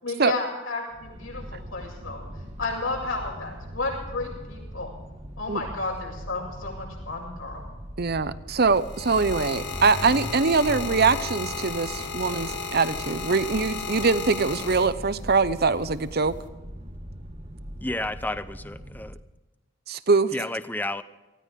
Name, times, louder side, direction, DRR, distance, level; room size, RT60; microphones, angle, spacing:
voice 1, 0.0-2.2 2.6-4.9 5.4-7.6, left 3 dB, 75° left, -1 dB, 7.0 m, -32 dB
sound 1, 0.9-19.3, equal, 30° right, 1.4 m, -40 dB
voice 2, 8.0-16.3 19.9-20.3, right 4 dB, 50° right, 14 dB, 0.8 m, -23 dB
sound 2, 8.5-15.3 16.2-16.5, left 5 dB, 55° left, 1.7 m, -34 dB
voice 3, 17.8-19.2 20.3-21.0, left 1 dB, 10° left, 13 dB, 0.5 m, -31 dB
19.5 x 16.0 x 3.7 m, 1.2 s
head